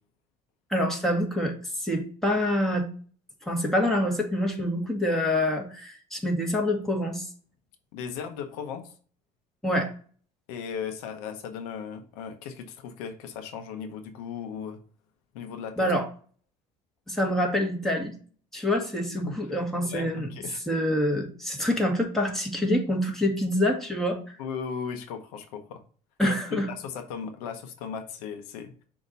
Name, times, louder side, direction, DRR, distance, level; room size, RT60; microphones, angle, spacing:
voice 1, 0.7-2.9 3.5-7.3 9.6-9.9 15.8-16.1 17.1-18.1 18.5-20.3 20.7-24.2 26.2-26.7, left 1 dB, ahead, 0 dB, 2.0 m, -26 dB
voice 2, 7.9-8.9 10.5-14.8 15.3-15.9 19.2-19.3 19.8-20.6 24.4-25.8 26.2-28.8, left 7 dB, 85° left, 7 dB, 0.9 m, -37 dB
6.6 x 2.9 x 5.2 m, 0.43 s
supercardioid pair, 80°, 19 cm